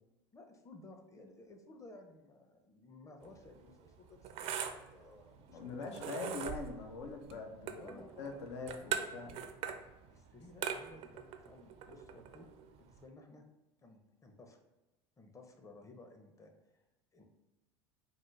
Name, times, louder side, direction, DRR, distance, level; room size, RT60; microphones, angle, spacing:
voice 1, 0.3-6.1 7.7-9.0 10.1-12.5 12.8-13.4 13.8-14.6 15.2-16.8 17.1-17.2, left 2 dB, 20° left, 4 dB, 0.6 m, -56 dB
sound 1, 3.2-13.0, right 8 dB, 50° right, 0.4 m, -43 dB
voice 2, 5.5-9.3 9.6-9.7, left 4 dB, 80° left, 4 dB, 0.5 m, -43 dB
3.8 x 2.1 x 3.1 m, 1.0 s
hypercardioid pair, 80°, 14 cm